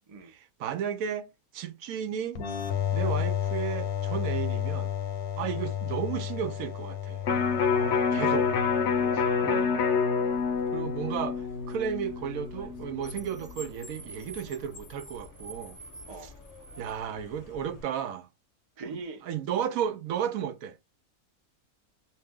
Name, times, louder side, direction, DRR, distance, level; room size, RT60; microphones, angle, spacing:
voice 1, 0.3-2.4 2.9-4.9 5.4-7.2 8.1-8.5 9.4-9.7 10.7-15.8 16.2-16.3 16.8-18.3 18.8-20.8, right 8 dB, 75° right, 1.0 m, -34 dB
sound 1, 2.4-9.8, left 10 dB, 85° left, 1.2 m, -32 dB
Electric guitar, 7.2-13.5 13.9-14.0, left 5 dB, 60° left, 0.8 m, -27 dB
voice 2, 7.7-8.3 9.0-9.3 16.1-16.3 18.8-19.2, right 4 dB, 40° right, 0.5 m, -42 dB
Car, 10.3-17.8, left 1 dB, 20° left, 0.6 m, -48 dB
2.6 x 2.6 x 3.4 m
omnidirectional pair, 1.5 m